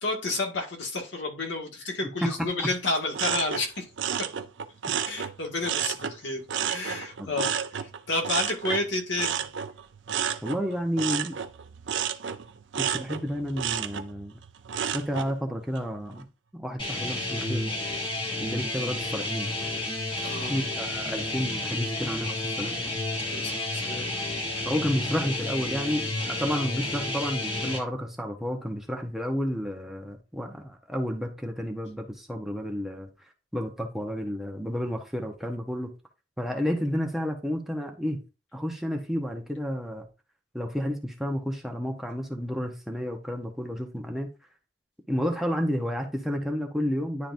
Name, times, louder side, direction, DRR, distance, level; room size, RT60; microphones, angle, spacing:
voice 1, 0.0-3.8 5.0-6.4 6.7-9.5 20.2-20.6 23.3-24.1, left 2 dB, 75° left, 1.7 m, -31 dB
sound 1, 3.1-6.2 6.5-15.3 15.8-16.2, right 8 dB, 80° right, 0.5 m, -31 dB
voice 2, 10.4-11.4 12.8-14.3 14.9-16.2 16.5-17.6 18.4-19.5 20.5-22.8 24.6-33.1 33.5-35.9 36.4-38.2 38.5-40.1 40.5-44.3 45.1-47.3, equal, ahead, 0.9 m, -31 dB
sound 2, 16.8-27.8, left 2 dB, 30° left, 2.2 m, -31 dB
10.5 x 3.9 x 2.6 m
head